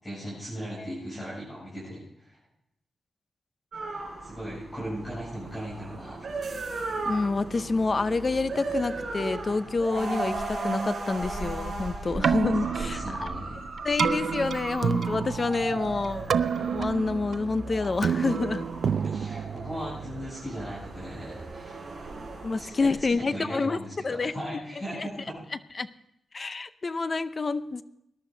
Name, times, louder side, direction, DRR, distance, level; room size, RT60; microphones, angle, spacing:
voice 1, 0.0-2.4 4.2-6.3 11.9-12.2 12.7-13.6 15.6-15.8 19.0-21.8 22.5-25.3, equal, 15° left, -8 dB, 7.5 m, -38 dB
sound 1, 3.7-23.1, right 3 dB, 45° right, 4.6 m, -36 dB
voice 2, 7.1-13.3 13.8-18.7 22.4-23.8 24.0-24.3 25.0-25.1 25.8-25.9 26.3-27.8, left 3 dB, 35° left, 13 dB, 0.6 m, -28 dB
Keyboard (musical), 12.1-20.2, right 7 dB, 70° right, 0.5 m, -29 dB
20.0 x 11.5 x 3.9 m, 0.81 s
wide cardioid pair, 135°, 0 cm